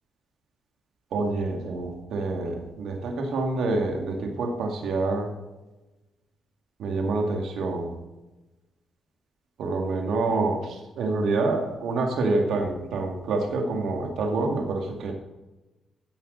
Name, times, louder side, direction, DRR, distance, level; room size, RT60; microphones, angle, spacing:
voice 1, 1.1-5.3 6.8-7.9 9.6-15.1, right 3 dB, 80° right, 3 dB, 2.0 m, -27 dB
14.0 x 5.9 x 3.9 m, 1.1 s
cardioid pair, 65°, 0 cm